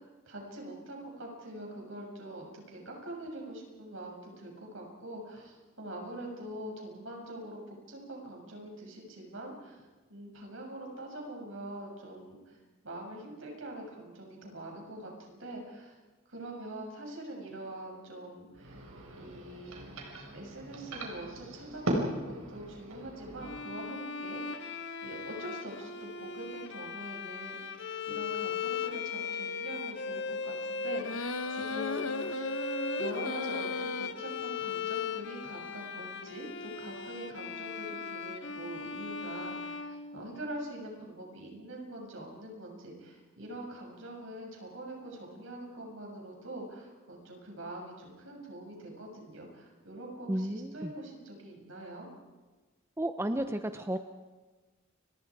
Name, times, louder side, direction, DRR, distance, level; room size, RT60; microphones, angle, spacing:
voice 1, 0.0-9.8 10.1-12.6 12.8-15.9 16.3-18.8 19.2-19.9 20.3-32.5 33.0-52.1, right 1 dB, 65° right, 1 dB, 6.9 m, -44 dB
sound 1, 18.5-23.6, right 1 dB, 90° right, 4.9 m, -38 dB
Bowed string instrument, 23.4-40.6, left 5 dB, 60° left, 1.6 m, -38 dB
sound 2, 31.0-34.1, left 3 dB, 80° left, 1.1 m, -36 dB
voice 2, 50.3-50.9 53.0-54.0, right 1 dB, 10° right, 8 dB, 0.7 m, -32 dB
29.5 x 23.5 x 4.9 m, 1.3 s
head